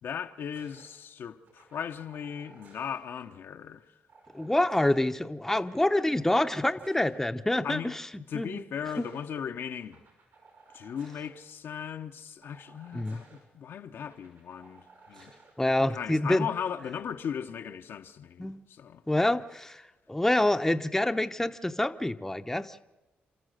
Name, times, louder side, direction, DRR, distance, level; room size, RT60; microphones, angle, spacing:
voice 1, 0.0-3.9 6.3-6.4 7.6-8.0 8.3-10.0 10.7-15.3 15.6-19.0, left 8 dB, 70° left, 1.0 m, -37 dB
sound 1, 0.5-0.9 1.4-3.0 4.1-5.1 5.6-7.2 8.5-9.3 9.8-11.3 12.4-13.4 14.0-15.5 16.8-17.2, right 4 dB, 75° right, 6.2 m, -57 dB
voice 2, 4.3-8.0 8.3-8.6 9.0-9.1 12.9-13.2 15.6-16.5 18.4-18.6 19.1-19.8 20.1-22.9, left 1 dB, 10° left, 0.8 m, -27 dB
29.5 x 13.5 x 6.5 m
cardioid pair, 65°, 4 cm